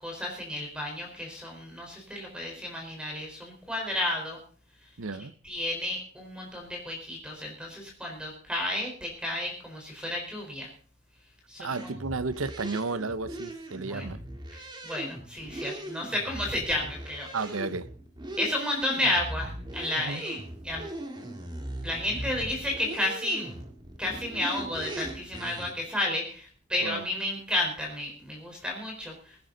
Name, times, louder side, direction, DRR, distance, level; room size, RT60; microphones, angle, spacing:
voice 1, 0.0-4.4 5.4-10.7 11.5-12.0 13.8-14.1 14.5-17.3 18.4-20.4 20.6-20.9 21.8-23.6 24.0-29.5, left 1 dB, 5° right, 4.3 m, -32 dB
voice 2, 5.0-5.3 11.6-14.2 17.3-17.9 20.0-20.2 26.8-27.0, right 3 dB, 85° right, 0.9 m, -33 dB
sound 1, 11.7-25.7, right 1 dB, 20° right, 2.3 m, -40 dB
22.5 x 10.5 x 4.0 m
head